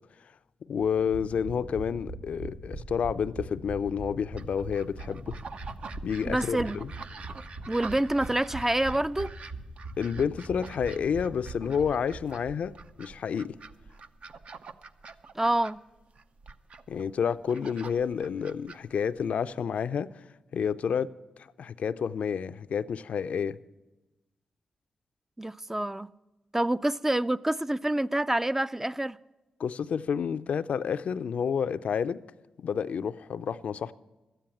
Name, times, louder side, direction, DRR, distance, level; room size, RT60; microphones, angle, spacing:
voice 1, 0.7-5.4 6.0-6.9 10.0-12.7 13.0-13.6 16.9-20.2 20.5-21.1 21.4-23.6 29.6-32.2 32.6-33.9, left 7 dB, 70° left, 0.4 m, -30 dB
sound 1, 0.8-12.5 12.8-12.9 13.1-13.2, right 2 dB, 90° right, 2.7 m, -41 dB
sound 2, 4.4-19.5, right 4 dB, 60° right, 0.6 m, -47 dB
voice 2, 6.3-6.8 7.7-9.3 15.4-15.8 25.4-26.1 26.5-29.2, right 1 dB, 15° right, 0.3 m, -27 dB
12.5 x 9.1 x 7.1 m
supercardioid pair, 50°, 2 cm